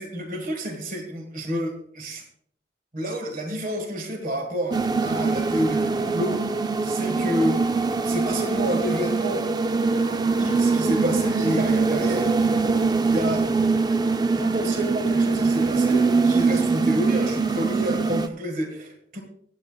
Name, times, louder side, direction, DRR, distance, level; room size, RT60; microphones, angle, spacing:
voice 1, 0.0-2.2 2.9-7.6 8.0-9.5 10.4-12.3 13.0-13.5 14.4-19.2, equal, 50° right, 4 dB, 1.6 m, -29 dB
sound 1, 4.7-18.3, right 4 dB, 20° right, 0.4 m, -23 dB
24.5 x 8.7 x 2.3 m, 0.65 s
head